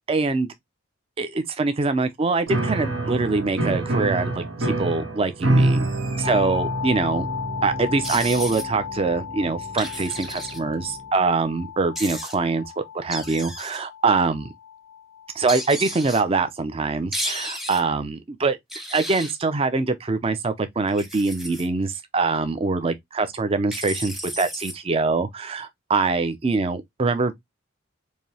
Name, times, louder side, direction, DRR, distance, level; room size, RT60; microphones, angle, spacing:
voice 1, 0.1-0.5 1.2-5.9 6.2-7.3 7.6-14.5 15.4-18.6 18.9-27.3, right 3 dB, 30° right, 0.4 m, -24 dB
Piano, 2.5-10.9, right 2 dB, 85° right, 1.3 m, -27 dB
sound 1, 6.2-16.0, left 9 dB, 65° left, 0.3 m, -35 dB
sound 2, 8.0-8.6 9.8-10.6 11.9-12.3 13.1-13.8 15.5-16.2 17.1-17.8 18.7-19.3 20.9-21.7 23.7-24.7, equal, ahead, 0.8 m, -33 dB
4.8 x 2.7 x 2.7 m
head